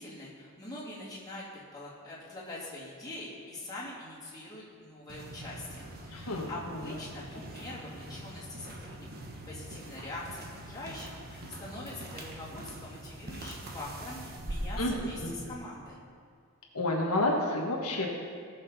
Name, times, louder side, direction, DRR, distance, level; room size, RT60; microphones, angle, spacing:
voice 1, 0.0-1.4 1.7-9.2 9.4-16.0, left 2 dB, 20° left, -8 dB, 3.0 m, -43 dB
sound 1, 5.1-15.5, right 1 dB, 45° right, 1.2 m, -43 dB
voice 2, 6.1-6.8 14.8-14.9 15.2-15.3 16.7-18.1, left 2 dB, 80° left, -1 dB, 1.4 m, -30 dB
18.5 x 6.5 x 4.2 m, 2.1 s
head